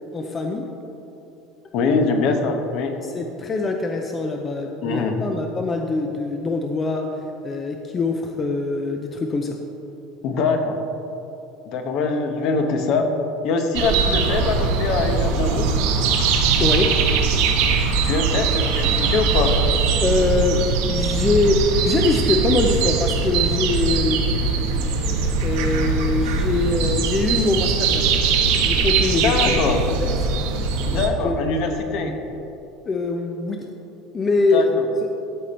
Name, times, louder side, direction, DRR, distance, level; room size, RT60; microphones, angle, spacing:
voice 1, 0.1-0.6 3.0-7.1 7.4-9.6 16.6-16.9 20.0-24.2 25.4-28.1 28.6-30.2 30.9-31.8 32.8-33.7 34.1-34.7, left 3 dB, 20° left, 3 dB, 0.5 m, -23 dB
voice 2, 1.7-3.0 4.8-5.2 10.2-10.8 11.7-13.1 13.4-15.7 18.0-19.5 29.2-29.8 30.8-32.2 34.5-34.8, left 4 dB, 50° left, 5 dB, 1.0 m, -23 dB
sound 1, 13.7-31.1, right 5 dB, 75° right, 1.1 m, -21 dB
13.5 x 5.2 x 4.3 m, 2.9 s
cardioid pair, 155°, 0 cm